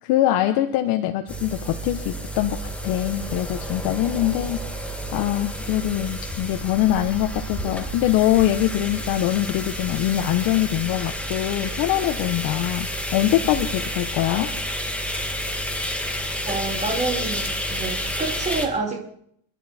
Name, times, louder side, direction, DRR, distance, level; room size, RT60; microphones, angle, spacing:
voice 1, 0.0-14.5, left 13 dB, 60° left, 5 dB, 1.3 m, -23 dB
sound 1, 1.3-18.7, equal, 5° left, 1.8 m, -30 dB
voice 2, 16.4-19.0, right 3 dB, 15° right, 1 dB, 3.1 m, -28 dB
30.0 x 11.0 x 4.4 m, 0.69 s
cardioid pair, 170°, 41 cm